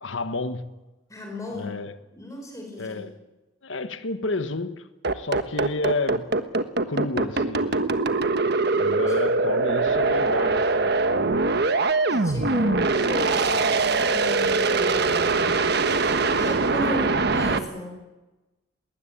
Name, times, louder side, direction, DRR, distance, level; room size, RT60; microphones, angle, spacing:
voice 1, 0.0-0.8 1.5-1.9 2.8-3.2 3.6-4.9 5.1-6.4 6.9-7.9 8.7-11.5 12.6-12.9, left 3 dB, 85° left, 1.5 m, -31 dB
voice 2, 1.1-1.7 2.1-3.1 9.1-9.2 12.1-15.5 16.4-18.0, equal, 15° left, 4.7 m, -35 dB
sound 1, 5.0-17.6, right 3 dB, 60° right, 1.3 m, -22 dB
21.0 x 19.5 x 8.9 m
head